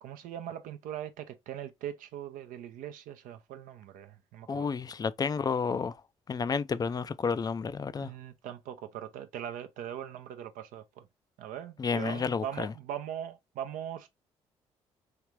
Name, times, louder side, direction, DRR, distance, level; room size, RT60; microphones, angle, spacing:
voice 1, 0.0-4.7 8.0-11.1 11.4-14.1, right 10 dB, 70° right, 0.5 m, -41 dB
voice 2, 4.5-6.0 6.3-8.1 11.8-12.7, left 5 dB, 25° left, 0.3 m, -31 dB
3.3 x 2.5 x 3.1 m
hypercardioid pair, 50°, 14 cm